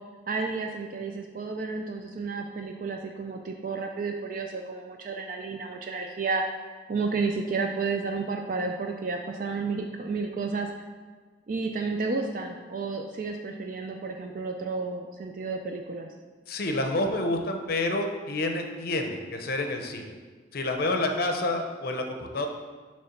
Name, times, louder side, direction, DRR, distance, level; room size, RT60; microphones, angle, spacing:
voice 1, 0.3-6.4 6.9-10.7 11.5-16.1, right 4 dB, 45° right, 3 dB, 0.4 m, -31 dB
voice 2, 16.5-20.1 20.5-22.5, left 2 dB, 50° left, 4 dB, 0.6 m, -28 dB
6.7 x 3.3 x 5.7 m, 1.5 s
head